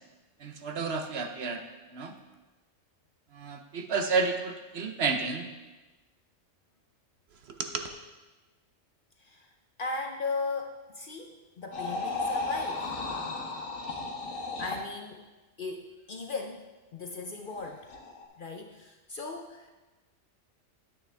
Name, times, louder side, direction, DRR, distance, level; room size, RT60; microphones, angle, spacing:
voice 1, 0.4-1.6 1.9-2.1 3.3-5.5 7.6-7.9, right 4 dB, 60° right, 5 dB, 0.9 m, -31 dB
voice 2, 9.2-12.9 14.3-15.3 15.6-17.9 18.4-19.7, left 3 dB, 50° left, 3 dB, 0.7 m, -37 dB
sound 1, 11.7-14.9 17.5-18.2, left 3 dB, 85° left, 1.5 m, -34 dB
9.7 x 8.8 x 3.4 m, 1.2 s
omnidirectional pair, 1.3 m